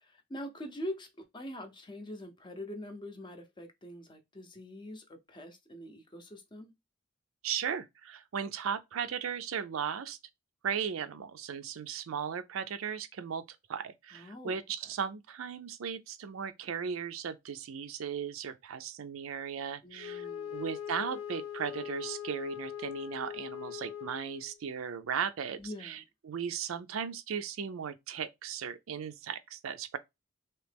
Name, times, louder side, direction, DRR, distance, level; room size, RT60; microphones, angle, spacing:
voice 1, 0.0-6.7 14.1-14.6 19.8-20.6 25.6-26.0, left 1 dB, 25° left, 0.6 m, -44 dB
voice 2, 7.4-10.2 10.6-13.4 13.7-30.0, right 7 dB, 90° right, 0.4 m, -37 dB
Wind instrument woodwind instrument, 20.0-24.6, left 9 dB, 80° left, 0.3 m, -41 dB
3.1 x 2.8 x 3.3 m
head